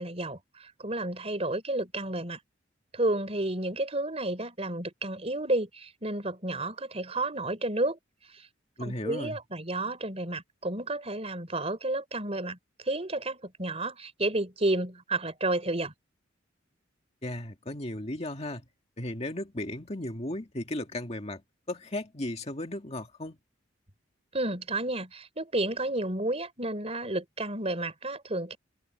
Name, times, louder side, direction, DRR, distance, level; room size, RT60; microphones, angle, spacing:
voice 1, 0.0-2.4 2.9-8.0 8.3-8.5 8.8-15.9 24.3-28.6, right 2 dB, 30° right, 4.1 m, -31 dB
voice 2, 8.8-9.4 17.2-18.6 19.0-21.4 21.7-23.4, left 1 dB, 35° left, 2.0 m, -35 dB
head